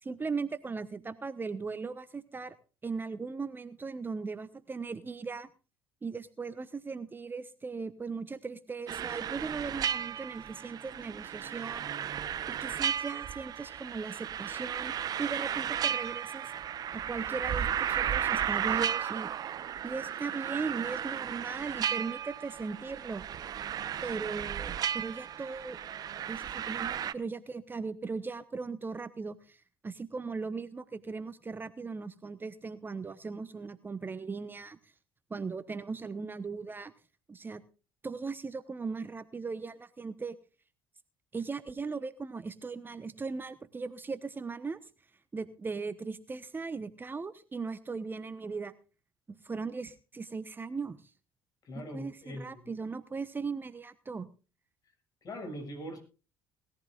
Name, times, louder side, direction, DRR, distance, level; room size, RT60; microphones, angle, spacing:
voice 1, 0.0-2.5 2.8-5.5 6.0-11.9 12.5-16.5 16.9-19.3 19.8-23.2 24.0-25.8 26.3-34.9 35.3-36.9 37.3-37.6 38.0-40.4 41.3-44.8 45.3-48.7 49.3-51.0 51.7-54.3, right 4 dB, 25° right, 12 dB, 1.1 m, -38 dB
sound 1, 8.9-27.1, right 9 dB, 50° right, 0.9 m, -34 dB
voice 2, 51.6-52.6 55.2-56.0, equal, 50° left, 6 dB, 6.7 m, -41 dB
20.0 x 14.5 x 2.5 m, 0.34 s
hypercardioid pair, 70°, 8 cm